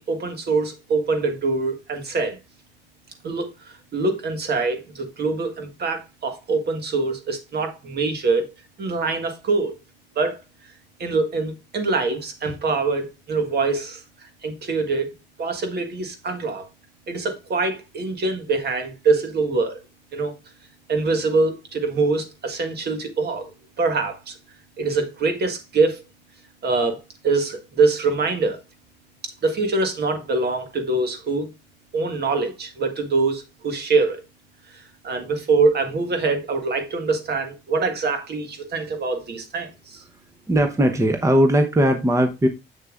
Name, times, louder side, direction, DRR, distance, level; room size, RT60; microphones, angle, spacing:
voice 1, 0.0-2.4 3.2-8.5 8.8-9.8 10.1-10.4 11.0-15.1 15.4-16.6 17.1-19.7 20.1-20.4 20.9-23.5 23.8-24.4 24.8-26.0 26.6-28.6 29.2-31.5 31.9-34.2 34.7-40.0, right 3 dB, 55° right, 1.6 m, -24 dB
voice 2, 40.5-42.5, right 1 dB, 15° right, 0.8 m, -18 dB
7.0 x 6.5 x 2.5 m
cardioid pair, 90°, 20 cm